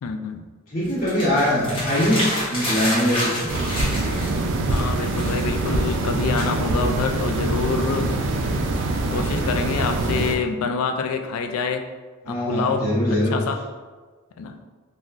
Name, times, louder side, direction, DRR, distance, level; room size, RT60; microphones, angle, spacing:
voice 1, 0.0-0.4 4.7-8.1 9.1-11.8 12.3-12.9 13.3-13.6 14.4-14.5, left 5 dB, 80° left, 6 dB, 0.3 m, -26 dB
voice 2, 0.7-3.4 12.2-13.4, equal, 45° left, -10 dB, 1.2 m, -22 dB
sound 1, 0.8-4.4 4.7-6.9, equal, 25° left, 0.9 m, -29 dB
sound 2, 3.5-10.4, right 2 dB, 60° right, 0.3 m, -24 dB
3.6 x 2.2 x 2.4 m, 1.4 s
head